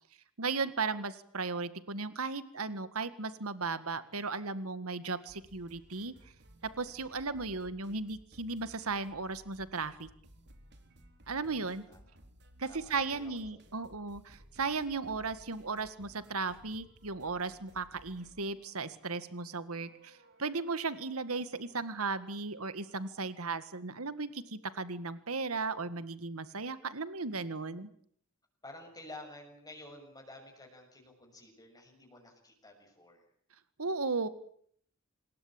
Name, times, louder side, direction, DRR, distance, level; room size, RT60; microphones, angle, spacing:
voice 1, 0.4-6.1 6.8-10.1 11.3-11.8 12.6-27.9 33.8-34.3, right 4 dB, 80° right, 13 dB, 1.8 m, -36 dB
sound 1, 5.3-23.0, right 1 dB, 55° right, 3.8 m, -59 dB
voice 2, 11.3-12.0 12.7-13.6 28.6-33.2, left 2 dB, 20° left, 2 dB, 6.8 m, -51 dB
27.0 x 21.5 x 8.9 m, 0.62 s
head